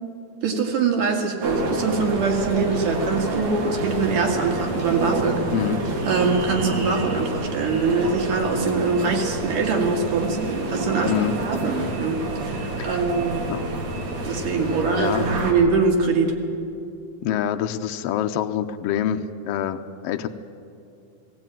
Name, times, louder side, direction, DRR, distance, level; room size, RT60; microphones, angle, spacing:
voice 1, 0.4-5.4 6.1-11.1 11.5-13.5 14.3-16.3, right 4 dB, 85° right, 2 dB, 3.6 m, -23 dB
sound 1, 1.4-15.5, right 2 dB, 65° right, 3.6 m, -28 dB
voice 2, 14.7-15.3 17.2-20.3, left 9 dB, 80° left, 7 dB, 1.4 m, -26 dB
19.0 x 17.0 x 9.0 m, 2.6 s
omnidirectional pair, 3.6 m